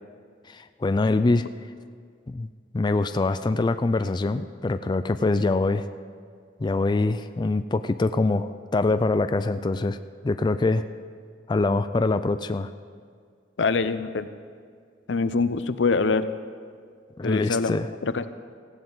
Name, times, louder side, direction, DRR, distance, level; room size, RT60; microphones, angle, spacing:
voice 1, 0.5-1.5 2.3-2.5 2.7-5.9 6.6-10.0 10.2-10.8 11.5-12.7 17.2-17.9, left 3 dB, 25° left, 10 dB, 0.4 m, -24 dB
voice 2, 13.6-14.3 15.1-16.2 17.2-17.8 18.0-18.3, left 4 dB, 80° left, 12 dB, 0.6 m, -24 dB
18.0 x 15.0 x 4.0 m, 2.1 s
head